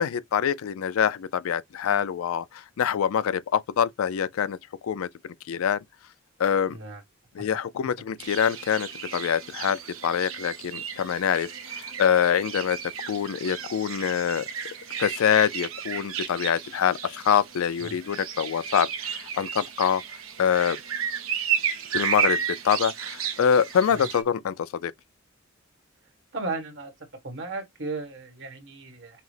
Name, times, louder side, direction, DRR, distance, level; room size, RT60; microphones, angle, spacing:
voice 1, 0.0-4.6 4.8-5.8 6.4-6.8 7.3-12.8 13.1-14.4 15.0-20.0 20.4-20.8 21.9-24.9, left 8 dB, 80° left, 0.4 m, -25 dB
voice 2, 6.7-7.0 17.8-18.0 23.9-24.1 26.3-26.9 27.2-29.2, right 3 dB, 60° right, 1.4 m, -35 dB
sound 1, 8.2-24.2, right 8 dB, 75° right, 0.9 m, -33 dB
5.7 x 2.0 x 3.2 m
head